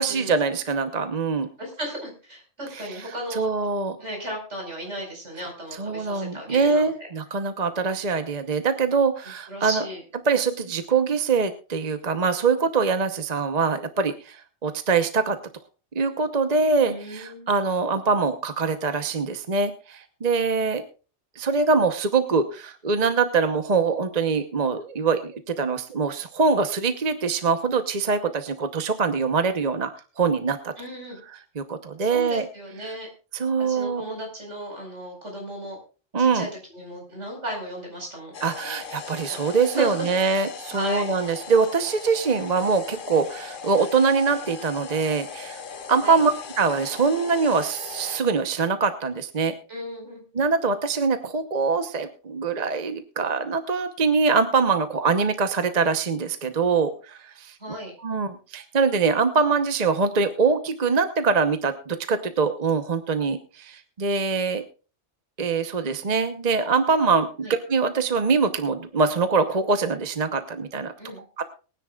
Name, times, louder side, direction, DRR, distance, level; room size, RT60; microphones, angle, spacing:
voice 1, 0.0-1.5 3.3-4.0 5.8-9.8 10.3-15.4 15.9-20.8 21.4-30.7 31.6-32.4 33.3-34.1 36.1-36.5 38.4-45.6 45.9-49.5 50.3-64.6 65.4-70.9 71.4-71.5, right 4 dB, 40° right, 8 dB, 1.0 m, -23 dB
voice 2, 1.6-3.5 4.0-7.1 9.5-10.0 16.9-17.6 30.8-31.2 32.0-33.1 33.6-35.8 36.2-38.3 39.3-39.4 39.7-40.2 40.7-41.2 46.0-46.2 49.7-50.2 57.6-57.9 67.4-67.5 71.0-71.2, right 1 dB, 75° right, 1 dB, 5.2 m, -35 dB
sound 1, 38.3-48.2, left 6 dB, 50° left, 1.0 m, -39 dB
23.0 x 9.8 x 2.4 m, 0.34 s
omnidirectional pair, 1.2 m